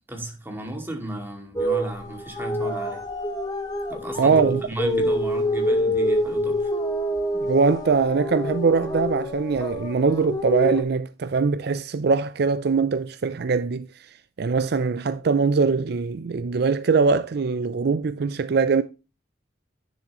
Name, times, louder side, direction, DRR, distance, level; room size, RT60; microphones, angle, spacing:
voice 1, 0.1-3.0 3.9-6.7, right 1 dB, 10° right, 2.4 m, -34 dB
sound 1, 1.6-10.8, equal, 20° left, 1.6 m, -26 dB
voice 2, 4.2-5.1 7.4-13.9 14.4-18.8, right 4 dB, 60° right, 0.5 m, -22 dB
9.9 x 7.2 x 3.0 m
head